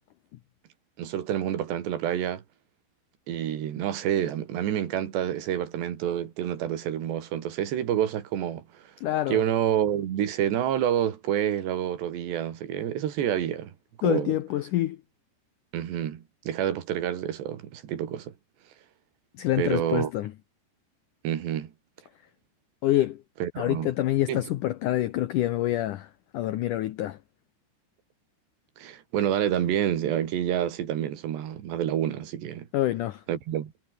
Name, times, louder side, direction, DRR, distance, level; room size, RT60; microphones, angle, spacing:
voice 1, 1.0-2.4 3.3-8.6 9.3-13.7 14.0-14.3 15.7-18.3 19.6-20.1 21.2-21.7 23.4-23.9 24.3-24.4 28.8-32.7 33.3-33.7, right 10 dB, 80° right, 4.5 m, -28 dB
voice 2, 9.0-9.4 14.0-15.0 19.4-20.3 22.8-23.2 23.6-27.2 32.7-33.2, left 14 dB, 85° left, 1.8 m, -26 dB
omnidirectional pair, 4.9 m